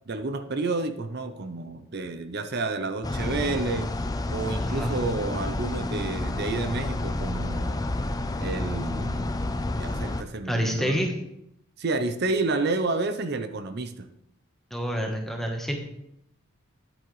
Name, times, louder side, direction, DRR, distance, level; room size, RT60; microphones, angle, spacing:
voice 1, 0.1-3.9 4.3-7.8 8.4-9.3 9.8-11.1 11.8-14.1, right 3 dB, 50° right, 9 dB, 0.6 m, -30 dB
sound 1, 3.0-10.2, left 2 dB, 15° left, 0.4 m, -30 dB
voice 2, 4.6-4.9 10.5-11.1 14.7-15.8, equal, ahead, 2 dB, 1.1 m, -27 dB
10.5 x 8.6 x 3.2 m, 0.81 s
head